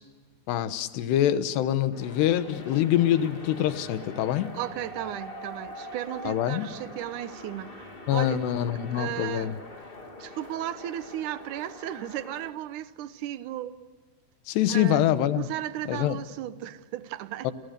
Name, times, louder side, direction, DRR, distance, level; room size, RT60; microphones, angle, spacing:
voice 1, 0.5-4.6 6.3-6.7 8.1-9.6 14.5-15.5 15.9-16.2 17.4-17.5, left 11 dB, 80° left, 3.3 m, -25 dB
sound 1, 1.9-12.5, left 1 dB, 20° left, 1.7 m, -43 dB
voice 2, 4.5-8.4 8.9-9.5 10.2-13.8 14.7-15.0 15.4-17.5, right 12 dB, 75° right, 1.9 m, -35 dB
30.0 x 29.5 x 6.7 m
omnidirectional pair, 4.8 m